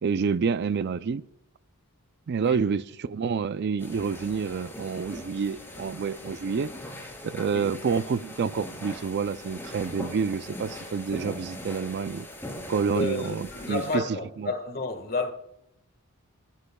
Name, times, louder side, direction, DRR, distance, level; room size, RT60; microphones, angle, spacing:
voice 1, 0.0-1.2 2.3-6.7 7.2-12.3 12.7-14.0 14.4-14.5, right 5 dB, 50° right, 0.4 m, -28 dB
voice 2, 2.4-2.7 7.5-7.7 12.9-15.3, left 3 dB, 45° left, 1.6 m, -31 dB
sound 1, 3.8-14.0, left 1 dB, 10° left, 3.7 m, -41 dB
27.5 x 13.0 x 2.3 m
head